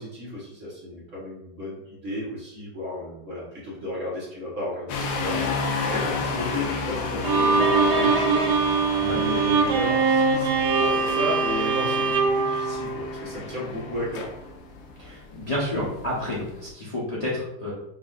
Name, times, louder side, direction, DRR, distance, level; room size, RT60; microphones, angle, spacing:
voice 1, 0.0-5.4 5.8-8.5 9.1-14.3, left 1 dB, 45° right, -6 dB, 1.4 m, -33 dB
sound 1, 4.9-16.7, left 4 dB, 75° left, 1.3 m, -32 dB
Bowed string instrument, 7.2-13.5, right 4 dB, 85° right, 1.4 m, -22 dB
voice 2, 15.0-17.7, left 1 dB, 55° left, -8 dB, 0.4 m, -30 dB
5.5 x 2.6 x 2.4 m, 0.85 s
omnidirectional pair, 2.1 m